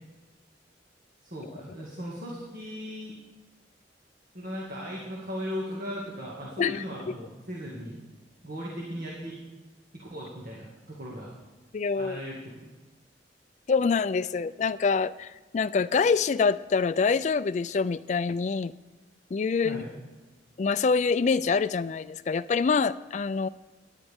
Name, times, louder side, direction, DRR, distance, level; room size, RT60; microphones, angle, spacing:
voice 1, 1.2-3.1 4.3-8.0 8.4-9.4 9.9-11.3 12.0-12.7 19.6-19.9, equal, 50° right, -4 dB, 2.1 m, -37 dB
voice 2, 11.7-12.2 13.7-18.7 19.3-19.8 20.6-23.5, left 5 dB, 40° left, 15 dB, 0.3 m, -25 dB
18.0 x 10.5 x 3.6 m, 1.2 s
head